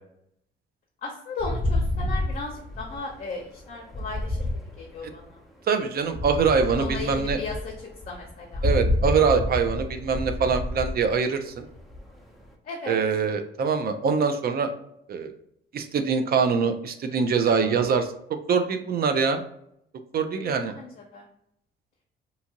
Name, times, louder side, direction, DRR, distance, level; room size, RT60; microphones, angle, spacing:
voice 1, 1.0-4.5 4.8-5.4 6.8-8.7 12.6-13.0 20.4-21.3, left 3 dB, 45° left, -1 dB, 0.6 m, -36 dB
sound 1, 1.4-5.4 6.1-12.5, left 1 dB, ahead, 0.6 m, -29 dB
voice 2, 5.7-7.4 8.6-11.6 12.9-14.7 15.1-15.3 15.7-19.4 20.1-20.7, right 5 dB, 50° right, 8 dB, 0.4 m, -24 dB
2.7 x 2.5 x 2.8 m, 0.73 s
cardioid pair, 90°, 20 cm